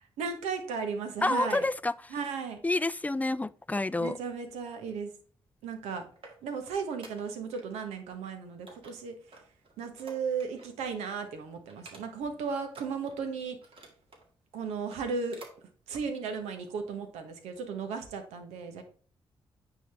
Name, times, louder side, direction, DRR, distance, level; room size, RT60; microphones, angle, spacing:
voice 1, 0.2-1.6 2.1-2.6 4.0-5.1 5.6-6.1 6.4-9.4 9.8-13.6 14.5-15.4 15.9-18.8, right 5 dB, 90° right, 1.1 m, -35 dB
voice 2, 1.2-2.2 2.6-4.2, left 2 dB, 15° left, 0.4 m, -29 dB
sound 1, 5.9-7.6 7.9-8.3 8.7-10.8 11.1-11.3 11.7-12.3 12.7-14.3 14.7-15.6 15.9-16.1 16.6-16.7, right 3 dB, 55° right, 1.9 m, -53 dB
9.1 x 3.9 x 3.5 m
supercardioid pair, 50°, 11 cm